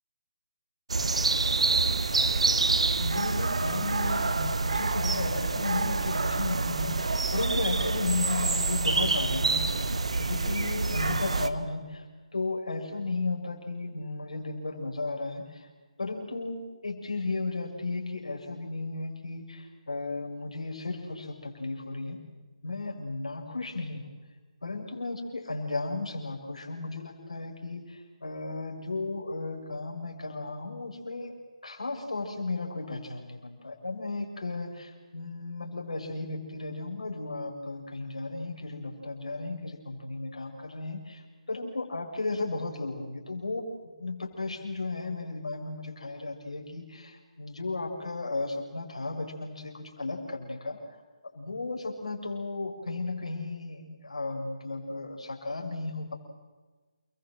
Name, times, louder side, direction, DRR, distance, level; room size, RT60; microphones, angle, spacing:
sound 1, 0.9-11.5, right 3 dB, 65° right, 1.6 m, -27 dB
voice 1, 3.0-12.1 12.3-15.7 16.0-22.2 22.6-24.1 24.6-31.4 31.6-41.2 41.5-50.8 51.3-56.1, left 3 dB, 65° left, 2 dB, 6.9 m, -34 dB
29.5 x 22.5 x 8.0 m, 1.3 s
figure-of-eight pair, 145°, 4 cm